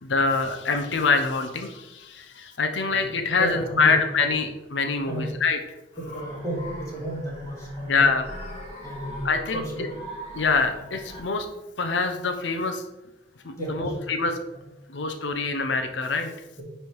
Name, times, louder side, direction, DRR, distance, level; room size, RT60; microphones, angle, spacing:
voice 1, 0.0-5.6 7.9-8.3 9.2-9.9 10.3-11.5 11.8-12.8 13.4-14.4 14.9-16.3, left 4 dB, 85° left, 6 dB, 0.7 m, -25 dB
voice 2, 3.4-3.9 4.2-4.3 5.1-5.3 6.0-8.0 8.8-9.9 10.7-10.8 13.6-14.1, right 1 dB, 15° left, -5 dB, 2.5 m, -33 dB
sound 1, 5.9-11.2, equal, 35° left, 1.6 m, -41 dB
9.7 x 3.4 x 4.6 m, 1.0 s
head